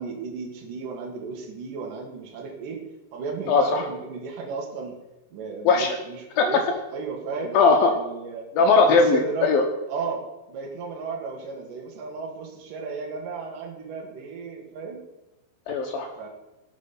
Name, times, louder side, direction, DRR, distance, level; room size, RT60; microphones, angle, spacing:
voice 1, 0.0-2.8 3.1-4.9 5.3-6.6 6.9-7.5 7.9-8.4 8.9-9.5 9.9-10.2 10.5-15.0 16.2-16.3, right 5 dB, 50° right, 1 dB, 3.2 m, -34 dB
voice 2, 3.5-3.8 5.6-6.0 6.4-6.6 7.5-7.9 8.6-9.7 15.7-16.1, left 4 dB, 80° left, 3 dB, 2.1 m, -19 dB
17.0 x 7.5 x 6.0 m, 0.99 s
omnidirectional pair, 5.6 m